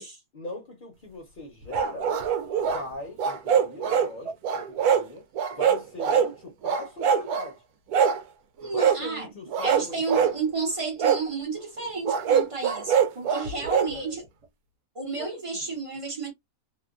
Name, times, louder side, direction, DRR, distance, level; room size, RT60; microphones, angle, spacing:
voice 1, 0.3-2.1 2.6-5.3 5.5-7.6 8.6-10.4 13.6-14.1 15.2-15.3 15.6-15.8, left 1 dB, 40° left, 0.9 m, -40 dB
sound 1, 1.7-2.8 3.2-4.1 4.4-5.1 5.4-6.3 6.6-7.5 7.9-8.2 8.8-9.0 9.5-10.4 11.0-11.2 12.1-13.9, right 7 dB, 75° right, 1.1 m, -23 dB
voice 2, 8.6-9.4 9.6-14.2 14.9-16.3, right 4 dB, 30° right, 0.7 m, -31 dB
3.0 x 2.3 x 2.4 m
omnidirectional pair, 1.7 m